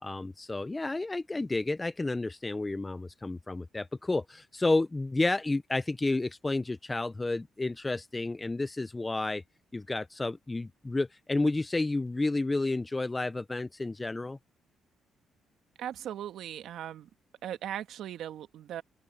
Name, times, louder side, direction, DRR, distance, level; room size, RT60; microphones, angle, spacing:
voice 1, 0.0-9.4 9.7-14.4, left 2 dB, 20° left, 0.6 m, -31 dB
voice 2, 15.8-17.1 17.4-18.8, right 11 dB, 75° right, 1.4 m, -38 dB
open air
cardioid pair, 90°, 0 cm